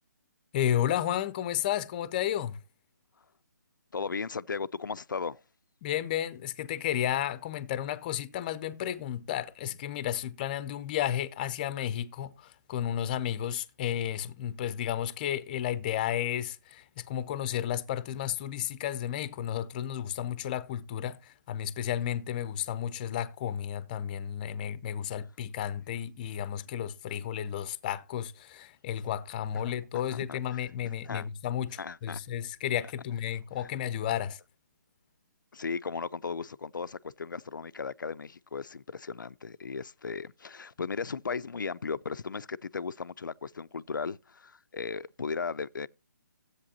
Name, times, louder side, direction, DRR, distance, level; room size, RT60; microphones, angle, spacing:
voice 1, 0.5-2.6 5.8-34.4, left 10 dB, 25° left, 0.6 m, -32 dB
voice 2, 3.9-5.4 30.1-30.6 31.0-31.3 31.8-32.2 35.5-45.9, left 5 dB, 85° left, 0.4 m, -36 dB
13.0 x 8.1 x 2.8 m
figure-of-eight pair, 150°, 10 cm